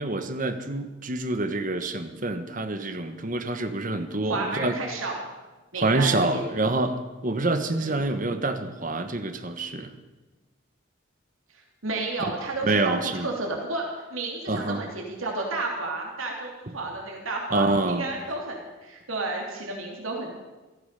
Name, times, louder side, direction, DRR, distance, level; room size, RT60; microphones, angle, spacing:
voice 1, 0.0-4.7 5.7-9.9 12.6-13.3 14.5-14.8 17.5-18.1, right 2 dB, 40° right, 8 dB, 1.3 m, -27 dB
voice 2, 4.2-5.3 5.7-6.4 7.8-8.0 11.5-13.8 14.1-20.3, right 2 dB, 90° right, 0 dB, 2.9 m, -32 dB
15.5 x 14.0 x 6.8 m, 1.2 s
head